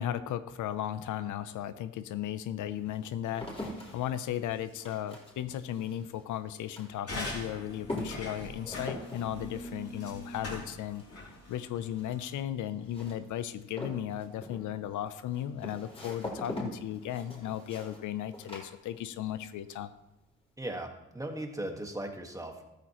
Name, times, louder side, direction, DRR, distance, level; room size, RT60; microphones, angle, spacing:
voice 1, 0.0-11.0 11.5-19.9, left 11 dB, 80° left, 13 dB, 0.7 m, -36 dB
sound 1, 1.4-1.5 2.2-19.4 19.7-20.2, left 1 dB, 20° left, 4.0 m, -44 dB
sound 2, 7.1-12.3, left 1 dB, 55° left, 5.4 m, -42 dB
voice 2, 20.6-22.6, right 1 dB, 10° right, 4 dB, 1.6 m, -38 dB
13.5 x 13.5 x 3.1 m, 0.94 s
cardioid pair, 90°, 30 cm